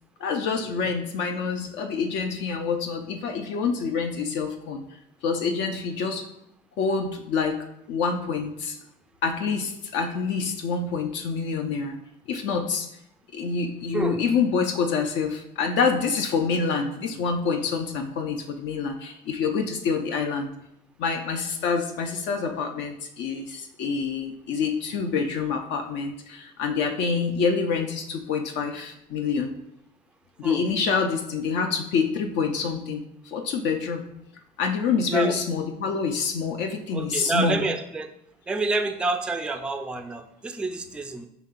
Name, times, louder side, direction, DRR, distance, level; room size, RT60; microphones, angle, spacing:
voice 1, 0.2-4.8 5.2-6.3 6.8-8.8 9.2-12.0 12.3-12.9 13.3-20.5 21.0-29.5 30.4-34.0 34.6-37.6, left 5 dB, 65° left, 4 dB, 0.5 m, -27 dB
voice 2, 36.9-38.1 38.5-41.3, right 3 dB, 5° right, 7 dB, 0.3 m, -28 dB
5.2 x 2.8 x 2.4 m, 0.78 s
hypercardioid pair, 70°, 20 cm